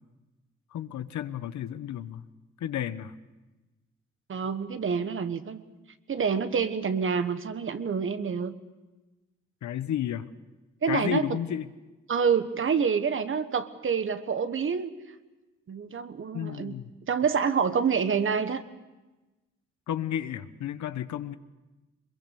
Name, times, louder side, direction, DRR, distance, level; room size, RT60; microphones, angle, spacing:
voice 1, 0.7-2.2 2.6-3.1 9.6-10.3 10.9-11.7 16.3-16.9 19.9-21.3, left 10 dB, 70° left, 12 dB, 1.1 m, -32 dB
voice 2, 4.3-5.6 6.1-8.5 10.8-11.3 12.1-14.9 15.7-16.7 17.1-18.6, right 6 dB, 45° right, 11 dB, 1.4 m, -27 dB
22.5 x 22.0 x 6.9 m, 1.1 s
cardioid pair, 90°, 30 cm